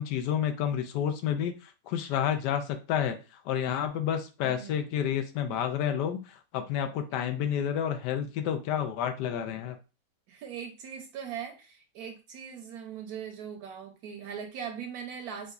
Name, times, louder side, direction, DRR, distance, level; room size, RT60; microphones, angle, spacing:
voice 1, 0.0-3.2 3.4-9.8, left 9 dB, 85° left, 1.2 m, -30 dB
voice 2, 4.4-4.9 7.1-7.2 10.3-15.5, right 7 dB, 70° right, 1.0 m, -40 dB
4.8 x 2.5 x 2.2 m
omnidirectional pair, 1.8 m